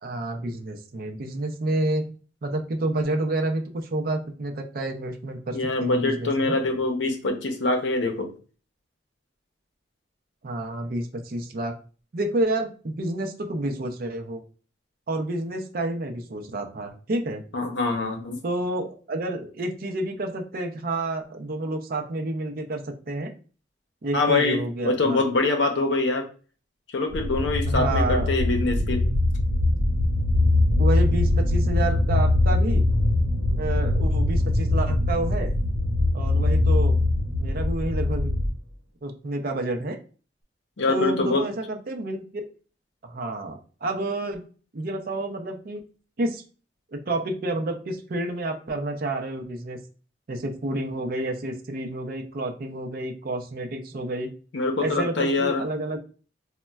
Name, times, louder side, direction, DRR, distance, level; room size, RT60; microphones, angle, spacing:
voice 1, 0.0-2.1 2.4-3.6 3.9-6.6 10.4-11.7 12.1-14.4 15.1-17.4 18.4-23.3 24.0-25.2 27.7-28.3 30.8-32.8 33.6-35.5 36.1-37.0 37.4-38.3 39.0-40.0 40.9-42.4 43.0-44.4 44.7-45.8 46.2-46.4 46.9-49.8 50.3-54.3 54.8-56.0, right 2 dB, 50° right, 5 dB, 0.5 m, -29 dB
voice 2, 5.5-8.3 17.5-18.4 24.1-26.3 26.9-29.1 40.8-41.5 54.5-55.6, left 2 dB, 80° left, 4 dB, 0.6 m, -24 dB
sound 1, 27.1-38.5, left 2 dB, 70° right, 0.8 m, -22 dB
4.0 x 2.1 x 2.2 m, 0.38 s
head